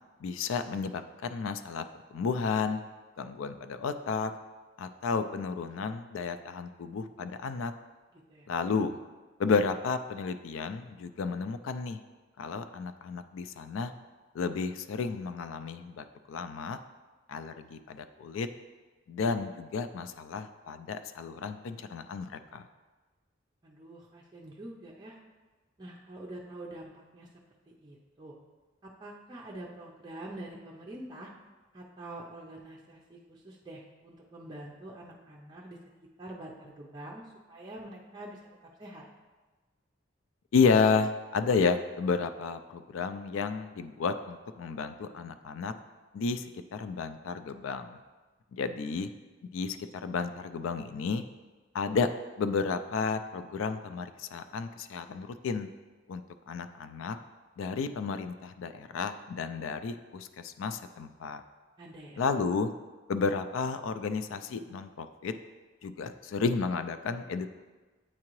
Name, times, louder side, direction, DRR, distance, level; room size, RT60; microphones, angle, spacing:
voice 1, 0.2-1.9 2.1-2.8 3.2-4.3 4.8-7.7 8.5-9.0 9.4-12.0 12.4-13.9 14.3-16.8 17.3-18.5 19.1-22.7 40.5-45.7 46.1-48.0 48.5-49.1 49.5-51.2 51.7-52.1 52.4-55.7 56.1-57.2 57.6-61.4 62.2-62.7 63.1-65.3 65.8-67.5, left 5 dB, 75° left, 10 dB, 0.3 m, -32 dB
voice 2, 8.1-8.5 23.6-25.2 25.8-27.3 27.8-28.4 28.8-31.3 31.7-35.8 36.2-37.2 37.5-38.4 38.8-39.0 61.8-62.2, right 1 dB, 20° right, -4 dB, 0.5 m, -45 dB
8.6 x 3.7 x 3.0 m, 1.3 s
head